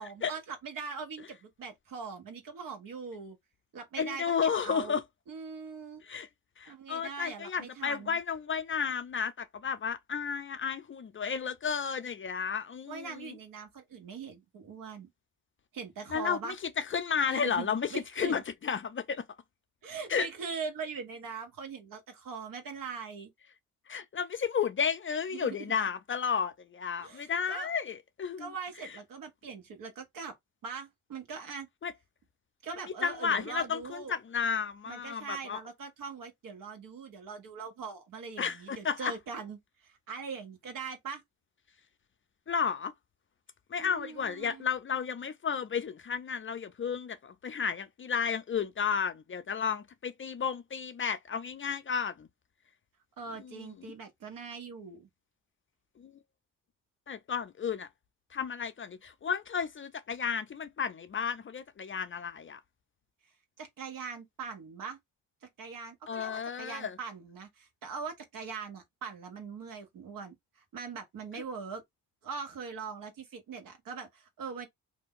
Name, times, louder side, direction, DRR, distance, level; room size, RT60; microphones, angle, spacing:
voice 1, 0.0-3.4 3.7-5.0 5.3-6.0 6.6-8.2 12.9-15.1 15.7-16.6 17.3-18.4 19.8-23.3 25.3-25.6 27.0-27.7 28.4-30.4 30.6-31.7 32.6-34.1 34.9-41.2 43.8-44.6 53.2-55.1 63.6-65.0 65.6-71.8 72.2-74.7, right 5 dB, 60° right, 1.3 m, -41 dB
voice 2, 4.0-5.0 6.0-6.3 6.6-13.3 16.1-19.2 20.1-20.3 23.9-28.5 31.8-31.9 33.0-35.6 38.4-39.1 42.5-42.9 43.7-52.3 53.8-53.9 56.0-56.1 57.1-57.9 58.3-62.6 66.1-67.0, left 6 dB, 35° left, 0.5 m, -32 dB
2.6 x 2.2 x 3.6 m
supercardioid pair, 65°, 37 cm